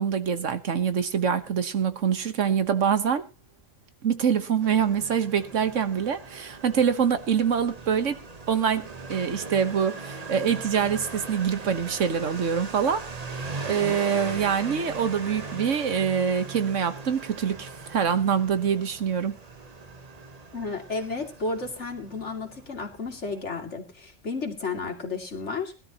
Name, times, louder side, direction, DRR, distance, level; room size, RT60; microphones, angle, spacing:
voice 1, 0.0-3.2 4.0-8.2 8.5-13.0 13.3-19.4, right 7 dB, 75° right, 1.5 m, -25 dB
Motorcycle, 4.6-23.4, right 3 dB, 35° right, 1.1 m, -39 dB
voice 2, 20.5-25.7, left 4 dB, 65° left, 2.8 m, -32 dB
20.5 x 12.5 x 2.9 m
omnidirectional pair, 1.3 m